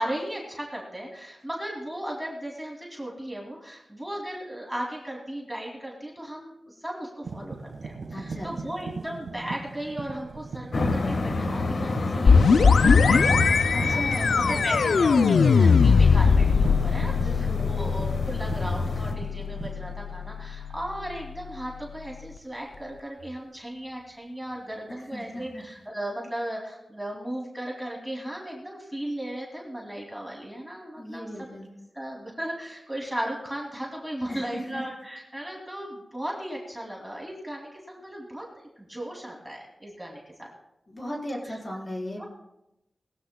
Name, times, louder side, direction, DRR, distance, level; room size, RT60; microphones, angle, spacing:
voice 1, 0.0-13.4 13.8-31.3 31.9-40.5 41.4-41.6 42.2-42.3, right 1 dB, 5° right, -2 dB, 2.5 m, -36 dB
sound 1, 7.2-20.7 21.0-21.4 23.2-23.4 25.2-25.8, right 4 dB, 80° right, 1.4 m, -39 dB
voice 2, 8.1-8.7 12.6-13.3 13.7-14.7 17.1-17.9 25.0-25.6 31.0-31.7 34.3-34.8 40.9-42.3, equal, 35° left, -2 dB, 4.0 m, -36 dB
sound 2, 10.7-19.1, left 3 dB, 70° left, 1.4 m, -28 dB
sound 3, 12.3-21.8, left 5 dB, 85° left, 0.3 m, -21 dB
20.5 x 14.5 x 2.2 m, 0.88 s
wide cardioid pair, 100°, 0 cm